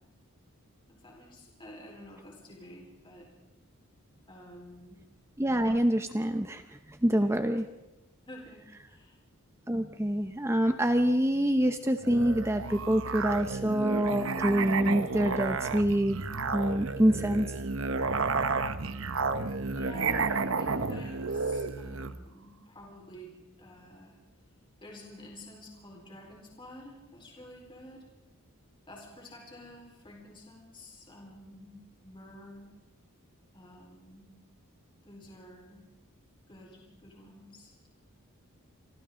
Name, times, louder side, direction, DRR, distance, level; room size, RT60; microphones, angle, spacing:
voice 1, 0.9-3.3 4.3-5.0 7.0-7.4 8.3-9.2 19.7-24.2 24.8-28.1 28.9-32.7 33.5-34.4 35.0-35.8 36.5-37.8, left 1 dB, 20° left, -1 dB, 4.4 m, -50 dB
voice 2, 5.4-7.6 9.7-16.2 16.5-17.5, right 1 dB, 10° right, 7 dB, 0.8 m, -26 dB
Musical instrument, 12.0-22.2, right 4 dB, 60° right, 1.0 m, -31 dB
28.0 x 25.5 x 3.9 m, 1.0 s
head